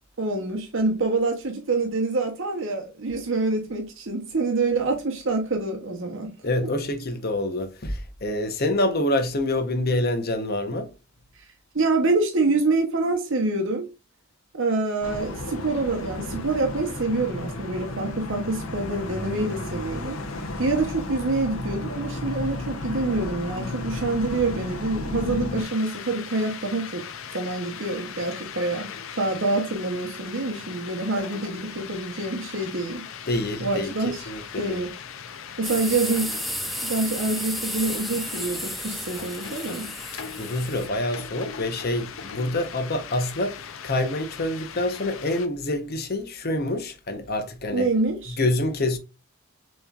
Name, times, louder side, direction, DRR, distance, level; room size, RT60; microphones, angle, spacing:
voice 1, 0.2-6.3 11.7-13.9 14.5-20.2 20.6-27.0 27.3-28.9 29.2-33.0 33.6-34.2 34.6-34.9 35.6-36.4 36.8-39.9 47.7-48.4, right 3 dB, 65° right, 0.9 m, -26 dB
voice 2, 6.4-10.9 33.3-34.8 40.1-47.9 48.4-49.0, left 1 dB, 50° left, 0.9 m, -27 dB
sound 1, 15.0-25.6, left 2 dB, 90° left, 0.9 m, -33 dB
sound 2, 25.6-45.5, left 7 dB, 70° left, 0.6 m, -39 dB
sound 3, 35.6-40.9, equal, ahead, 0.4 m, -33 dB
6.9 x 3.1 x 2.4 m
head